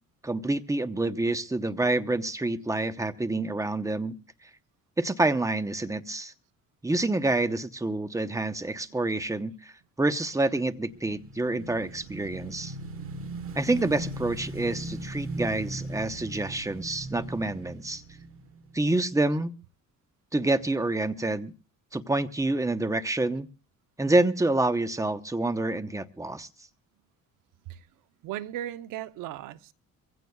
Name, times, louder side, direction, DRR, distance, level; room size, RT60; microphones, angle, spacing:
voice 1, 0.2-4.2 5.0-6.3 6.8-9.7 10.0-12.7 13.5-18.0 18.7-19.5 20.3-21.5 21.9-23.5 24.0-26.5, right 2 dB, 10° right, 0.9 m, -27 dB
voice 2, 8.9-9.2 10.4-10.5 27.6-27.9 28.2-29.7, right 12 dB, 80° right, 0.8 m, -38 dB
Motorcycle / Engine, 10.7-19.2, right 2 dB, 40° right, 1.4 m, -39 dB
23.0 x 16.0 x 2.3 m
cardioid pair, 90°, 32 cm